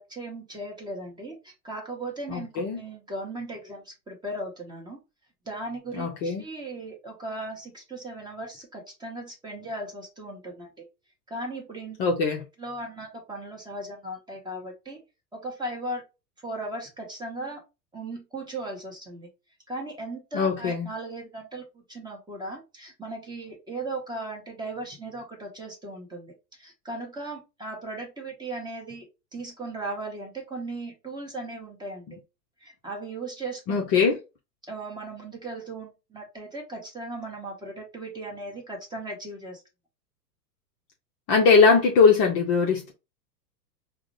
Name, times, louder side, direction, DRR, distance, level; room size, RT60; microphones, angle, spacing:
voice 1, 0.0-5.0 5.5-10.9 11.3-12.0 12.6-15.0 15.3-16.0 16.4-17.6 17.9-19.3 19.7-29.1 29.3-32.2 32.6-33.8 34.7-39.6, right 2 dB, 10° right, 0.8 m, -37 dB
voice 2, 2.3-2.8 6.0-6.4 12.0-12.4 20.3-20.9 33.7-34.2 41.3-42.9, left 5 dB, 30° left, 0.5 m, -21 dB
4.8 x 2.1 x 2.6 m
hypercardioid pair, 100°, 50 cm